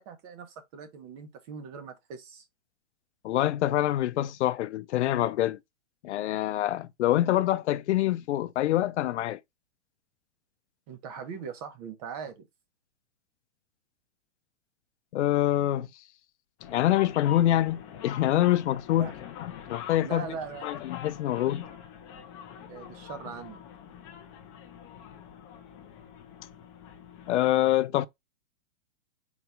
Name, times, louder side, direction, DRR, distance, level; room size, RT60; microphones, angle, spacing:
voice 1, 0.0-2.5 10.9-12.5 19.0-19.2 20.0-20.8 22.6-23.6, right 6 dB, 35° right, 0.7 m, -40 dB
voice 2, 3.2-5.6 6.0-9.4 15.1-15.9 16.6-19.1 19.4-20.2 20.6-21.6 27.3-28.1, left 13 dB, 75° left, 0.5 m, -25 dB
sound 1, 16.6-27.3, left 9 dB, 20° left, 0.3 m, -44 dB
4.0 x 2.2 x 4.3 m
hypercardioid pair, 150°, 35 cm